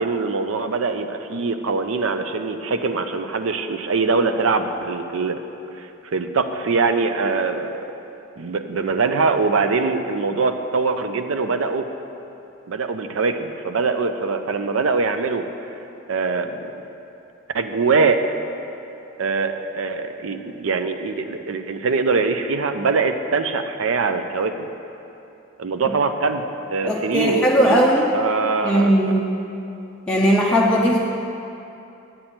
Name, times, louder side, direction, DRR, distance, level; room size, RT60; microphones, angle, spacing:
voice 1, 0.0-5.4 5.8-7.8 8.4-11.9 12.7-15.4 16.1-16.8 17.5-18.2 19.2-24.7 25.6-26.4 26.7-27.9 28.1-28.9, right 4 dB, 75° right, 7 dB, 0.5 m, -23 dB
voice 2, 26.8-28.1 28.6-29.2 30.1-31.0, equal, 5° left, -5 dB, 0.6 m, -18 dB
8.8 x 8.8 x 4.4 m, 2.8 s
head